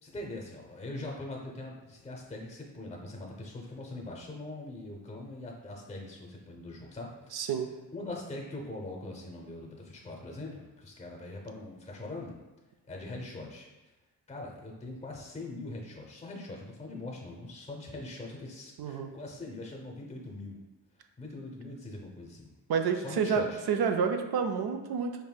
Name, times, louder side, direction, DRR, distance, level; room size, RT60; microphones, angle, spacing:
voice 1, 0.0-7.5 7.9-12.4 12.9-13.7 14.3-20.6 21.2-22.5 22.9-23.7, left 2 dB, 15° left, 0 dB, 0.6 m, -42 dB
voice 2, 7.3-7.7 18.8-19.1 22.7-23.4 23.7-25.3, right 6 dB, 65° right, 6 dB, 0.5 m, -29 dB
5.4 x 2.6 x 2.2 m, 1.1 s
cardioid pair, 85°, 41 cm